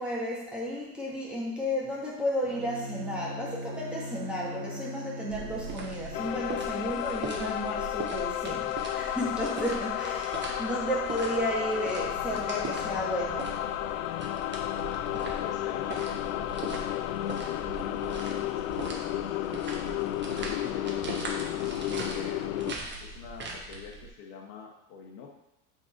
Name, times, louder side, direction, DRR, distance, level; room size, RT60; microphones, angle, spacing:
voice 1, 0.0-13.5, equal, ahead, -6 dB, 2.1 m, -33 dB
Bowed string instrument, 2.4-6.5, equal, 45° right, 1.0 m, -40 dB
sound 1, 5.3-24.1, right 3 dB, 25° right, 1.3 m, -41 dB
sound 2, 6.1-22.7, left 13 dB, 70° left, 0.5 m, -32 dB
voice 2, 15.1-16.0 16.3-21.2 21.9-25.3, left 5 dB, 55° left, 2 dB, 1.5 m, -46 dB
6.8 x 4.2 x 4.6 m, 0.87 s
hypercardioid pair, 90°, 42 cm